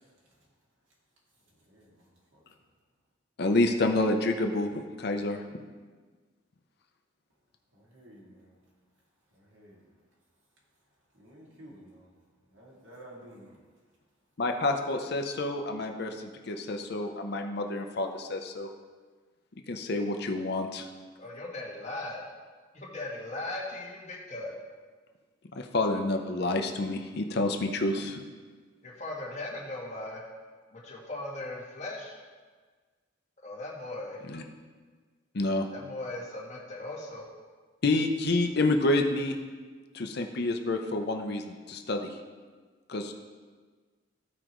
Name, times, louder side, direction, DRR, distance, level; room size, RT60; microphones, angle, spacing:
voice 1, 1.7-2.0 2.3-2.4 7.7-8.5 9.3-9.8 11.1-12.1 12.5-13.6, right 1 dB, 80° right, -5 dB, 2.2 m, -52 dB
voice 2, 3.4-5.4 14.4-18.7 19.7-20.9 25.5-28.2 34.3-34.4 35.3-35.7 37.8-39.4 39.9-42.1 42.9-43.1, left 2 dB, 55° left, 4 dB, 0.7 m, -28 dB
voice 3, 21.2-22.2 22.7-24.5 28.8-30.3 30.7-32.2 33.4-34.2 35.7-37.3, left 2 dB, 35° left, -4 dB, 1.8 m, -38 dB
15.0 x 5.0 x 3.1 m, 1.5 s
head